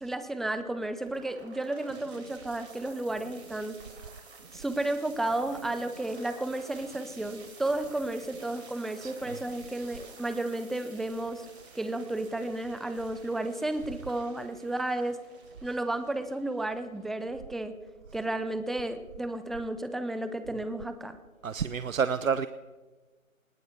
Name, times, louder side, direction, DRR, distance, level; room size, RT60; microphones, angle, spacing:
voice 1, 0.0-3.8 4.5-11.5 11.7-15.2 15.6-17.7 18.1-21.2, right 2 dB, ahead, 0.4 m, -32 dB
sound 1, 1.0-17.0, right 3 dB, 50° right, 4.0 m, -51 dB
voice 2, 9.0-9.4 21.4-22.5, right 6 dB, 70° right, 0.7 m, -29 dB
20.0 x 19.0 x 3.4 m
figure-of-eight pair, 155°, 41 cm